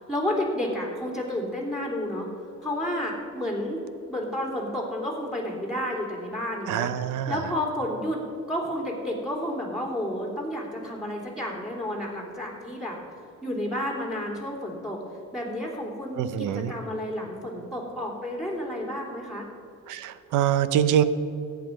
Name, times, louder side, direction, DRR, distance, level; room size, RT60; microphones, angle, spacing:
voice 1, 0.1-2.3 2.6-3.8 4.1-6.9 7.3-8.2 8.5-13.0 13.4-15.0 15.3-19.5, left 1 dB, ahead, -1 dB, 3.3 m, -31 dB
voice 2, 6.7-7.4 16.2-16.7 19.9-21.0, right 10 dB, 90° right, 13 dB, 0.8 m, -24 dB
14.0 x 9.3 x 5.3 m, 2.7 s
cardioid pair, 90°, 30 cm